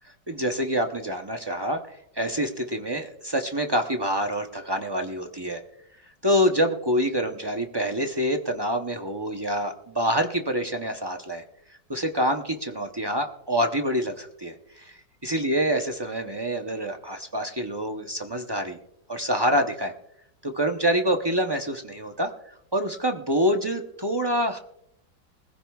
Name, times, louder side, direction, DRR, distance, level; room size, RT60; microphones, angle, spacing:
voice 1, 0.3-5.6 6.2-11.4 11.9-18.8 19.1-19.9 20.4-24.6, equal, 40° right, 4 dB, 0.3 m, -26 dB
21.0 x 15.0 x 2.3 m, 0.77 s
omnidirectional pair, 1.9 m